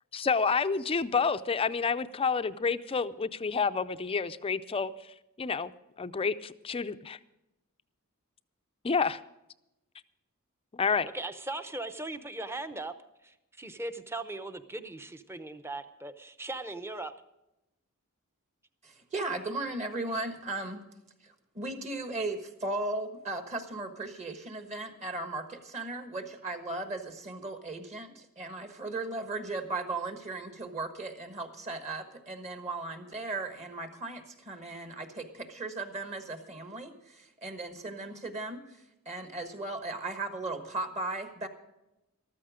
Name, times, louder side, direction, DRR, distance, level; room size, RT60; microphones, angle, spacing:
voice 1, 0.1-5.7 6.0-7.2 8.8-9.2 10.7-11.1, left 5 dB, 25° left, 13 dB, 0.4 m, -29 dB
voice 2, 11.1-12.9 13.2-17.1, right 2 dB, 10° right, 10 dB, 0.7 m, -39 dB
voice 3, 18.8-20.8 21.2-38.8 39.0-41.5, right 2 dB, 30° right, 7 dB, 1.4 m, -37 dB
14.5 x 13.0 x 5.0 m, 0.91 s
head